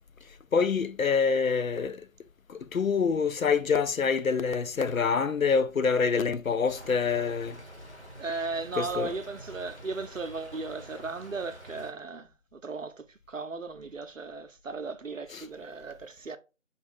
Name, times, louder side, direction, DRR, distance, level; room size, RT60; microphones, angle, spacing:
voice 1, 0.5-2.0 2.5-7.6 8.8-9.1 15.3-15.5, left 5 dB, 90° left, 0.6 m, -26 dB
Stream / Trickle dribble, 6.7-11.9, right 1 dB, 55° left, 1.3 m, -47 dB
voice 2, 8.2-16.4, right 3 dB, 70° right, 0.6 m, -36 dB
4.2 x 2.4 x 3.4 m
figure-of-eight pair, 175°, 40 cm